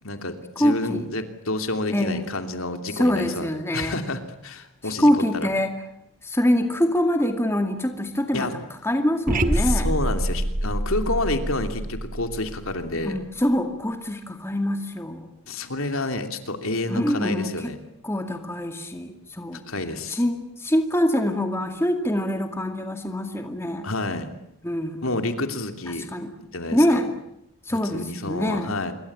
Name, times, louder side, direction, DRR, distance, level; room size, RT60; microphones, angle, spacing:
voice 1, 0.0-5.5 8.3-8.5 9.6-13.2 15.5-17.8 19.7-20.2 23.8-24.3 25.0-26.1 26.4-27.0 27.7-28.9, left 2 dB, 75° left, 7 dB, 3.0 m, -29 dB
voice 2, 0.6-1.1 1.9-2.2 2.9-4.0 4.8-5.7 6.2-9.9 13.0-15.3 16.9-17.7 18.0-19.6 20.1-23.9 24.6-25.1 26.1-26.3 26.7-27.1 27.7-28.8, equal, 10° left, 5 dB, 2.3 m, -24 dB
sound 1, 9.3-13.4, right 1 dB, 40° right, 1.9 m, -26 dB
26.5 x 23.0 x 8.8 m, 0.79 s
head